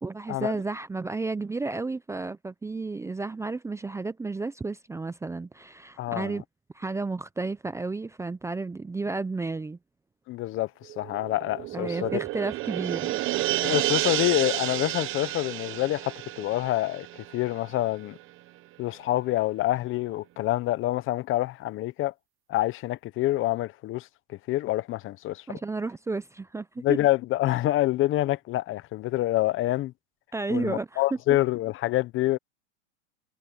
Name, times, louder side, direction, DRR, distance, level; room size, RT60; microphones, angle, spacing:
voice 1, 0.0-6.4 6.7-9.8 11.7-13.2 25.5-27.0 30.3-31.0, right 3 dB, 5° right, 0.7 m, -32 dB
voice 2, 6.0-6.4 10.3-10.7 11.0-12.2 13.6-17.1 17.3-18.2 18.8-22.1 22.5-24.1 24.5-25.6 26.8-29.9 30.5-32.4, left 16 dB, 30° left, 0.9 m, -27 dB
sound 1, 10.9-17.9 18.2-18.3, right 17 dB, 35° right, 1.0 m, -31 dB
hypercardioid pair, 120°, 38 cm